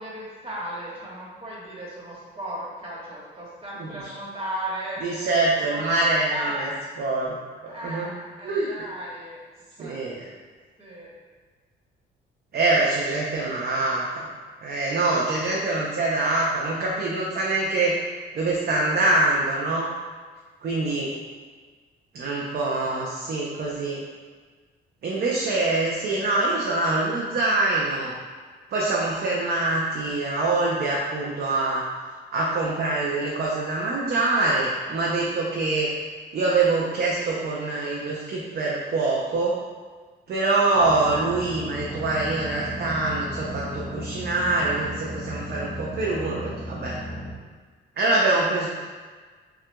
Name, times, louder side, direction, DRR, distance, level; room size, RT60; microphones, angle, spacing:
voice 1, 0.0-6.6 7.7-9.4 9.8-10.0 10.8-11.1, right 1 dB, 25° right, -6 dB, 1.4 m, -36 dB
voice 2, 3.8-4.1 5.0-6.7 7.0-7.4 7.6-8.1 8.4-8.7 9.8-10.2 12.5-14.3 14.6-18.0 18.3-19.9 20.6-21.1 22.1-24.0 25.0-28.1 28.7-31.8 32.3-35.9 36.3-39.5 40.3-47.0 48.0-48.7, right 2 dB, 55° right, -4 dB, 0.6 m, -24 dB
sound 1, 40.7-47.3, equal, 30° left, 0.8 m, -36 dB
5.8 x 2.4 x 2.2 m, 1.5 s
cardioid pair, 90°, 20 cm